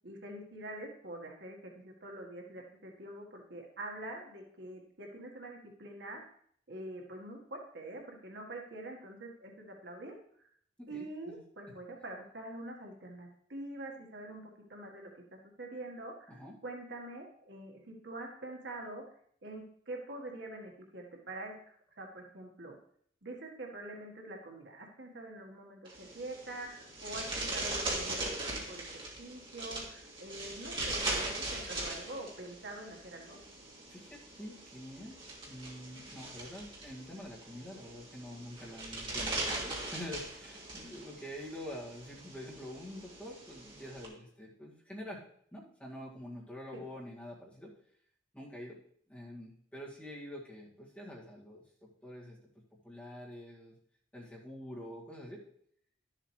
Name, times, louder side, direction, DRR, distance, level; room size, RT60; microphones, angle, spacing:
voice 1, 0.0-6.2 6.7-10.1 10.9-14.4 14.7-19.0 19.4-21.5 22.0-22.8 23.2-33.4 46.7-46.8, right 1 dB, 65° right, 1 dB, 1.5 m, -45 dB
voice 2, 10.8-11.4 11.7-11.8 16.3-16.6 33.9-35.2 35.5-45.2 45.5-47.7 48.3-48.8 49.1-53.8 54.1-55.4, left 1 dB, 5° left, -6 dB, 2.1 m, -46 dB
sound 1, 25.9-44.1, right 2 dB, 25° right, 2.2 m, -40 dB
12.0 x 7.4 x 3.2 m, 0.63 s
head